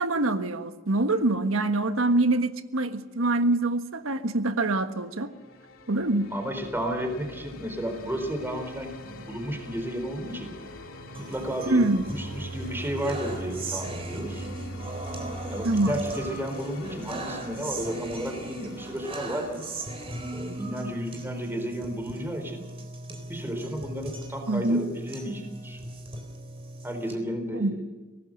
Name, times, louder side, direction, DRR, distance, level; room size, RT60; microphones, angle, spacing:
voice 1, 0.0-5.3 5.9-6.3 11.7-12.1 15.6-15.9 24.5-24.8 27.5-27.7, right 2 dB, 90° right, 9 dB, 1.4 m, -25 dB
sound 1, 5.0-22.8, left 1 dB, 85° left, 2.7 m, -45 dB
voice 2, 6.3-10.5 11.1-11.8 12.1-14.4 15.5-19.6 20.3-22.6 23.3-25.8 26.8-27.8, equal, 10° right, 5 dB, 4.2 m, -33 dB
sound 2, 11.1-27.1, right 2 dB, 30° right, 3.8 m, -38 dB
24.5 x 18.0 x 6.5 m, 1.3 s
head